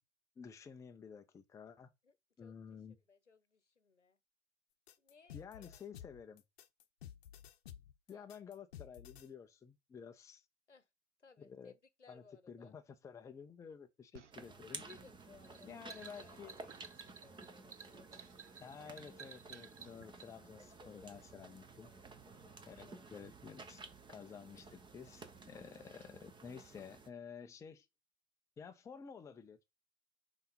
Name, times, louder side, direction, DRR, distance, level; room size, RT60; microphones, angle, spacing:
voice 1, 0.4-1.9 2.4-3.0 5.3-6.4 8.1-10.4 11.4-11.7 12.1-14.8 15.6-16.6 18.6-21.9 22.7-23.8 24.1-27.9 28.6-29.6, left 6 dB, 10° left, 0.5 m, -52 dB
voice 2, 2.0-2.6 2.9-4.2 5.0-5.9 8.1-8.3 10.7-10.9 11.2-12.7 14.7-18.3 20.6-21.5 21.8-23.1, left 4 dB, 85° left, 0.9 m, -63 dB
sound 1, 4.9-9.3, left 10 dB, 60° left, 0.8 m, -53 dB
sound 2, 14.1-20.3, right 6 dB, 90° right, 0.5 m, -55 dB
sound 3, 14.3-27.1, right 3 dB, 15° right, 0.9 m, -54 dB
5.6 x 4.1 x 5.3 m
figure-of-eight pair, 90°, 35 cm